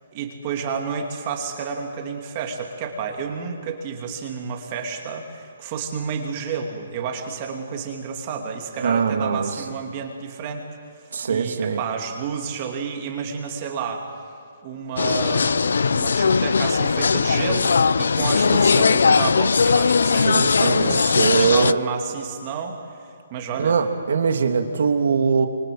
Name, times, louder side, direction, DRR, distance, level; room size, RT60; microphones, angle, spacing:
voice 1, 0.1-10.7 11.3-14.0 14.6-22.8 23.3-23.8, right 6 dB, 25° right, 2 dB, 2.7 m, -30 dB
voice 2, 8.8-9.5 11.1-11.8 20.1-21.8 23.6-25.5, right 5 dB, 65° right, 5 dB, 2.7 m, -22 dB
sound 1, 15.0-21.7, left 5 dB, 80° left, 0.6 m, -19 dB
28.0 x 26.0 x 7.9 m, 2.3 s
hypercardioid pair, 170°, 0 cm